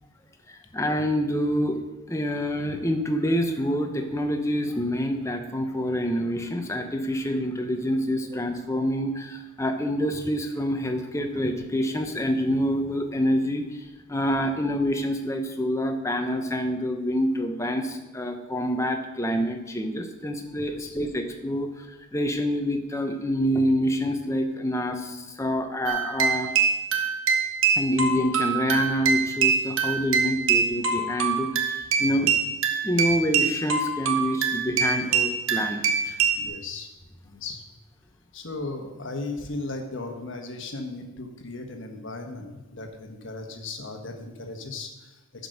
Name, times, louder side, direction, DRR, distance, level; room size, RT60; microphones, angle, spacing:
voice 1, 0.5-1.8 2.1-26.5 27.8-32.3 32.8-36.2, equal, 15° left, 5 dB, 0.8 m, -27 dB
sound 1, 25.9-36.4, right 6 dB, 70° right, 1.0 m, -24 dB
voice 2, 36.3-36.9 37.2-37.6 38.3-45.2, left 3 dB, 60° left, 4 dB, 1.3 m, -36 dB
10.5 x 5.3 x 6.4 m, 1.1 s
head